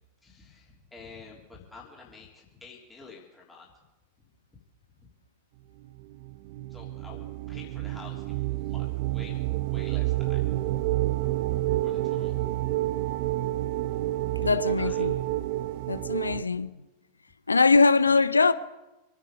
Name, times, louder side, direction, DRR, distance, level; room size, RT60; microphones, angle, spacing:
voice 1, 0.2-3.7 5.0-5.1 6.7-10.4 11.8-12.6 14.4-15.1 18.1-18.2, left 4 dB, 10° left, 3.4 m, -49 dB
sound 1, 5.8-16.4, right 16 dB, 45° right, 0.5 m, -29 dB
voice 2, 14.4-15.1 15.9-16.7 17.5-18.5, left 4 dB, 80° left, 0.6 m, -22 dB
26.5 x 9.5 x 4.9 m
figure-of-eight pair, 90°, 0 cm